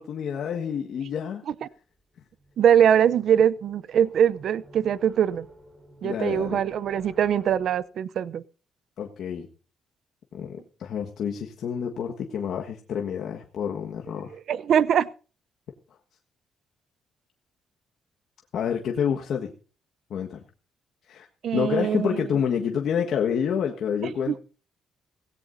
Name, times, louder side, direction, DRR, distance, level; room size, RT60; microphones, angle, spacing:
voice 1, 0.0-1.4 6.0-6.6 9.0-9.5 10.3-14.3 18.5-19.5 20.1-20.4 21.1-21.3 21.5-24.4, left 7 dB, 70° left, 1 dB, 1.5 m, -28 dB
sound 1, 2.3-7.8, equal, 40° right, 5.9 m, -50 dB
voice 2, 2.6-5.5 6.0-8.4 14.5-15.1 21.4-22.3 24.3-24.4, right 9 dB, 65° right, 18 dB, 0.6 m, -22 dB
17.5 x 17.0 x 2.7 m, 0.36 s
cardioid pair, 90°, 0 cm